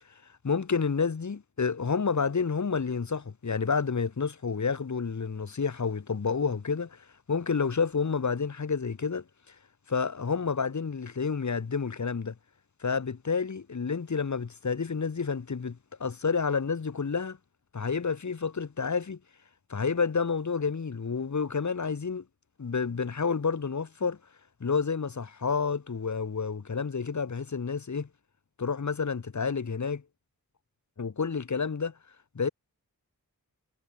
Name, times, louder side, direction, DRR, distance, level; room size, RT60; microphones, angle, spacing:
voice 1, 0.4-9.5 9.9-12.3 12.8-17.4 17.7-19.2 19.7-22.2 22.6-24.2 24.6-28.1 28.6-30.0 31.0-31.9 32.3-32.5, left 5 dB, 55° left, 1.4 m, -29 dB
wide cardioid pair, 65°, 35 cm